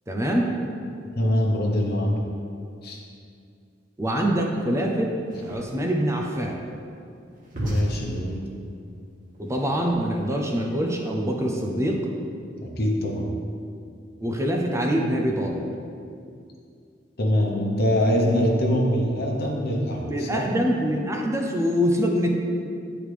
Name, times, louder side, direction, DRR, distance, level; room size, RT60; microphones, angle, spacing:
voice 1, 0.1-0.5 4.0-5.2 5.4-6.6 9.4-12.1 14.2-15.7 20.0-22.3, equal, 15° right, 0 dB, 0.6 m, -24 dB
voice 2, 1.1-2.2 2.8-3.0 7.6-8.4 12.6-13.3 17.2-20.5, equal, 60° left, -1 dB, 1.0 m, -24 dB
sound 1, 5.2-10.3, equal, 50° right, 1.6 m, -35 dB
9.3 x 4.9 x 3.4 m, 2.4 s
head